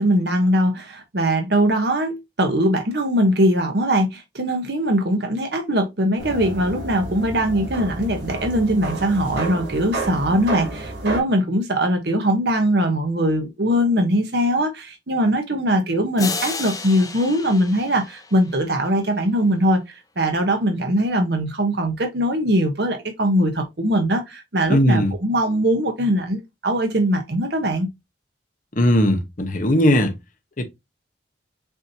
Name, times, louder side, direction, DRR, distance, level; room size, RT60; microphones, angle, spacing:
voice 1, 0.0-27.9, equal, 60° right, 1.0 m, -21 dB
sound 1, 6.2-11.2, right 2 dB, 85° right, 3.6 m, -30 dB
sound 2, 16.2-19.0, left 4 dB, 20° left, 0.7 m, -32 dB
voice 2, 24.7-25.1 28.8-30.1 30.6-30.7, equal, 45° left, 0.9 m, -18 dB
7.0 x 2.8 x 2.7 m
head